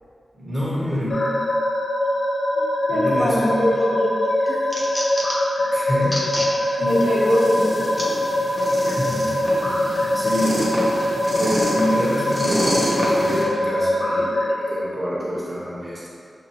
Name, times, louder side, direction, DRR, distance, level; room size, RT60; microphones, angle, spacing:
voice 1, 0.3-1.3 2.9-3.6 5.6-6.2 6.8-6.9 9.0-9.8 10.1-10.7 11.3-12.8 13.1-16.1, equal, 20° right, -7 dB, 1.2 m, -27 dB
sound 1, 1.1-14.5, left 1 dB, 60° left, 0.4 m, -23 dB
voice 2, 2.6-4.2 4.5-4.6 6.8-7.8, equal, 85° left, -5 dB, 0.8 m, -22 dB
sound 2, 3.4-3.9 4.2-5.5 6.0-6.5 7.0-7.1 8.0-8.1 8.9-9.0, equal, 20° left, 0.6 m, -29 dB
sound 3, 6.9-13.4, equal, ahead, 1.0 m, -28 dB
5.8 x 2.5 x 2.9 m, 2.3 s
wide cardioid pair, 100°, 0 cm